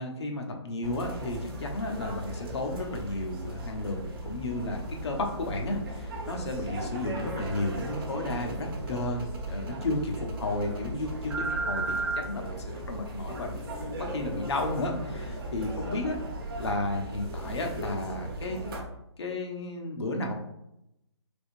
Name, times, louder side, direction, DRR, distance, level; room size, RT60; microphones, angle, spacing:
voice 1, 0.0-13.7 14.0-16.2 16.6-18.6 19.2-20.3, left 2 dB, 60° left, 2 dB, 0.9 m, -33 dB
sound 1, 0.8-18.8, right 1 dB, 50° right, 1.0 m, -36 dB
3.8 x 3.5 x 2.6 m, 0.83 s
hypercardioid pair, 160°, 15 cm